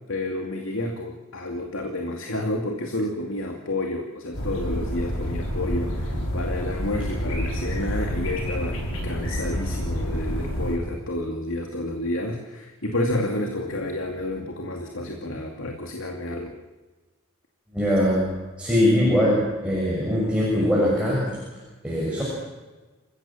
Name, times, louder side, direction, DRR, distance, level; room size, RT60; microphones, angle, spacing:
voice 1, 0.1-16.5, left 1 dB, 70° left, 2 dB, 2.6 m, -30 dB
sound 1, 4.3-10.8, equal, 90° left, 6.7 m, -28 dB
voice 2, 17.7-18.3 18.6-21.2 21.8-22.2, equal, 5° right, -6 dB, 6.8 m, -21 dB
28.5 x 16.5 x 7.4 m, 1.2 s
head